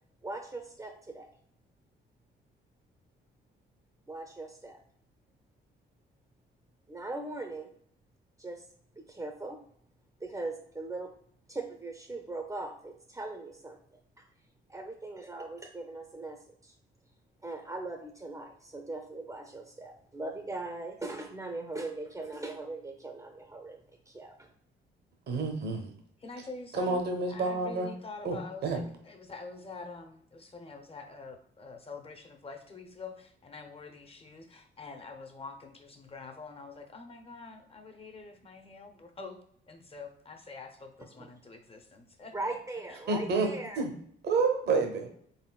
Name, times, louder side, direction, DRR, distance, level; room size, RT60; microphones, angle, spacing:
voice 1, 0.2-1.3 4.1-4.8 6.9-7.7 8.4-8.6 9.0-9.6 10.2-11.1 11.5-14.3 14.7-16.7 17.4-24.5 41.2-41.3 42.3-43.8, right 2 dB, 15° right, 3 dB, 0.6 m, -40 dB
voice 2, 25.3-25.9 26.7-27.9 28.2-28.4 28.6-28.8 43.1-43.5 43.8-43.9 44.2-45.1, right 4 dB, 55° right, 3 dB, 0.8 m, -28 dB
voice 3, 26.2-27.0 27.3-39.4 39.7-42.3 42.9-43.4, left 4 dB, 30° left, 5 dB, 0.8 m, -46 dB
4.1 x 3.7 x 2.3 m, 0.65 s
cardioid pair, 90°, 20 cm